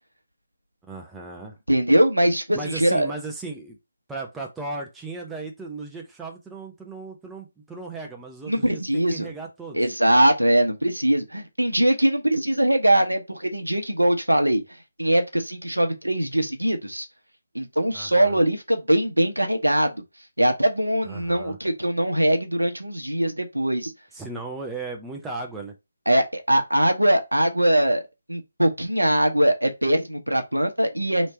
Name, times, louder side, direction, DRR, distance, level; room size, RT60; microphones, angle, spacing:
voice 1, 0.8-1.6 2.5-3.8 4.1-9.8 17.9-18.4 21.0-21.6 24.1-25.7, right 3 dB, 5° right, 0.6 m, -36 dB
voice 2, 1.7-3.1 8.5-9.3 9.7-14.6 15.0-17.1 17.5-19.9 20.4-23.9 26.1-28.0 28.3-31.3, right 1 dB, 85° right, 1.0 m, -21 dB
3.3 x 3.1 x 4.3 m
figure-of-eight pair, 150°, 0 cm